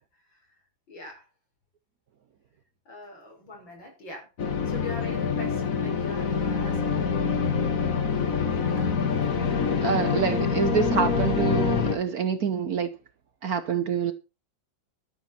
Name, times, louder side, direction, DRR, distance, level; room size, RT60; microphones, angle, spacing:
voice 1, 0.9-1.3 2.9-4.3 4.6-7.2 8.7-8.9, left 2 dB, 85° left, 7.2 m, -42 dB
sound 1, 4.4-12.0, left 5 dB, 50° left, 1.8 m, -25 dB
voice 2, 9.8-12.9 13.4-14.1, right 7 dB, 55° right, 1.4 m, -26 dB
12.5 x 11.0 x 4.4 m
omnidirectional pair, 2.0 m